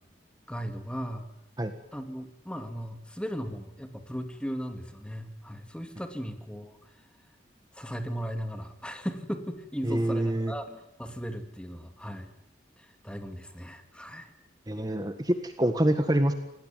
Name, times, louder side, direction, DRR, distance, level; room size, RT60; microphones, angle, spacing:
voice 1, 0.5-1.3 1.9-7.0 7.7-12.3 12.8-14.3, equal, 5° left, 7 dB, 2.5 m, -37 dB
voice 2, 9.8-10.5 14.7-16.3, right 1 dB, 20° right, 7 dB, 1.6 m, -26 dB
27.0 x 18.5 x 9.2 m, 0.84 s
head